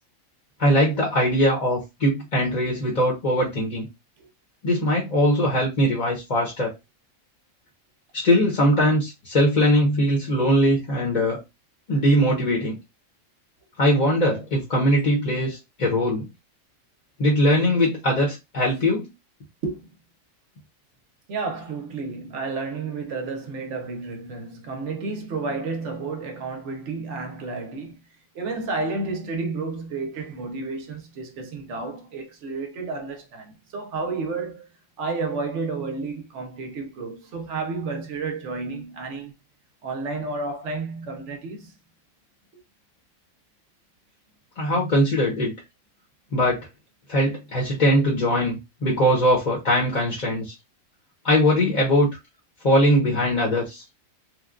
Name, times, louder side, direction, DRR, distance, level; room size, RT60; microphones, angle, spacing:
voice 1, 0.6-3.9 4.6-6.7 8.1-11.4 11.9-12.8 13.8-16.2 17.2-19.1 44.6-45.5 46.3-46.6 47.1-50.5 51.2-52.1 52.6-53.8, equal, 35° left, 0.8 m, -21 dB
voice 2, 19.6-19.9 21.3-28.1 28.3-34.7 35.0-39.3 39.8-41.7, right 3 dB, 65° right, 0.9 m, -31 dB
3.1 x 2.2 x 2.4 m
omnidirectional pair, 1.4 m